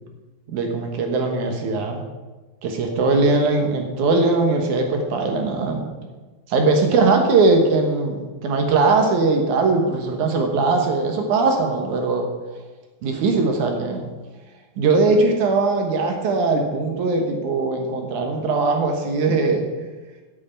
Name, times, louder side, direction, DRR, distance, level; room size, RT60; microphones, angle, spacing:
voice 1, 0.5-2.0 2.6-5.9 6.5-12.3 13.0-14.1 14.8-19.9, right 3 dB, 65° right, 3 dB, 2.1 m, -20 dB
8.4 x 7.8 x 8.8 m, 1.3 s
omnidirectional pair, 4.9 m